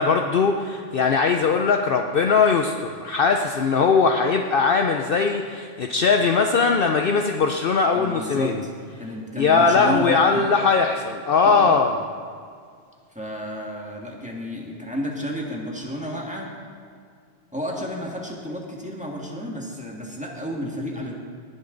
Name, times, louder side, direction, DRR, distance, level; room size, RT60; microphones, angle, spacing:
voice 1, 0.0-8.7 9.4-12.0, left 5 dB, 55° left, 4 dB, 0.8 m, -20 dB
voice 2, 7.9-8.7 9.0-10.4 11.5-11.8 13.1-16.5 17.5-21.1, equal, 5° right, -2 dB, 1.8 m, -31 dB
19.5 x 10.5 x 3.9 m, 2.1 s
omnidirectional pair, 1.2 m